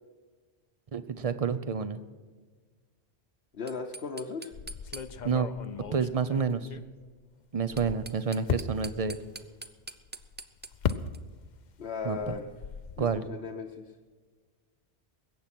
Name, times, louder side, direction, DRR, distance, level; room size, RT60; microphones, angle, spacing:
voice 1, 0.9-2.0 5.2-5.5 5.9-6.7 7.5-9.2 12.0-12.3 13.0-13.3, right 6 dB, 40° right, 12 dB, 0.8 m, -29 dB
voice 2, 3.5-4.5 11.8-12.4 13.0-13.9, left 5 dB, 70° left, 1 dB, 1.2 m, -37 dB
sound 1, 3.5-5.4 7.6-11.2, right 2 dB, 15° right, 0.3 m, -46 dB
sound 2, 4.5-7.2 7.6-11.6 11.9-13.2, left 7 dB, 50° left, 0.7 m, -37 dB
21.0 x 8.5 x 6.0 m, 1.4 s
omnidirectional pair, 1.1 m